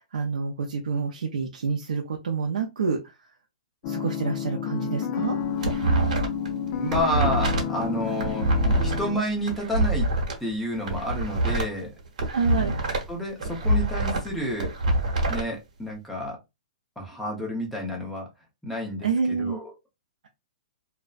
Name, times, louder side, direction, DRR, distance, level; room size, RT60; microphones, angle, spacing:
voice 1, 0.0-3.0 3.9-5.4 12.3-12.8 19.0-19.6, right 5 dB, 90° right, 0.5 m, -28 dB
sound 1, 3.8-9.2, left 7 dB, 35° left, 0.4 m, -30 dB
sound 2, 5.2-6.5 6.8-10.3 10.8-13.1 13.4-15.4, right 1 dB, 75° right, 1.0 m, -25 dB
voice 2, 6.7-8.5 8.8-10.1 10.4-11.9 12.6-12.7 13.1-14.7 15.3-16.4 17.0-18.3 18.6-19.6, equal, 5° left, 0.7 m, -30 dB
2.5 x 2.1 x 2.3 m
hypercardioid pair, 155°, 4 cm